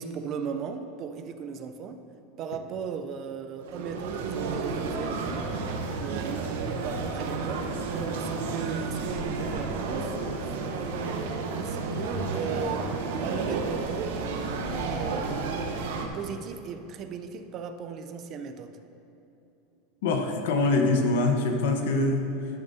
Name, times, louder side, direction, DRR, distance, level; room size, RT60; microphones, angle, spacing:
voice 1, 0.0-2.0 2.4-5.6 6.0-7.7 8.1-10.2 10.4-18.8, right 6 dB, 30° right, 8 dB, 0.4 m, -37 dB
sound 1, 3.6-16.1, right 4 dB, 85° right, 1.0 m, -31 dB
voice 2, 20.0-22.3, left 2 dB, 75° left, 4 dB, 1.1 m, -24 dB
11.5 x 10.5 x 2.7 m, 3.0 s
supercardioid pair, 165°, 0 cm